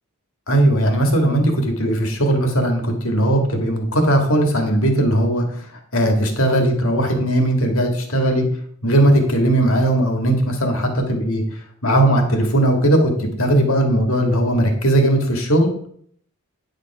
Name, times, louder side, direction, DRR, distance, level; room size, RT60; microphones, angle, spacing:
voice 1, 0.5-5.6 5.9-8.4 8.8-11.4 11.8-15.7, right 1 dB, 70° left, 4 dB, 1.9 m, -18 dB
10.0 x 5.3 x 4.7 m, 0.63 s
head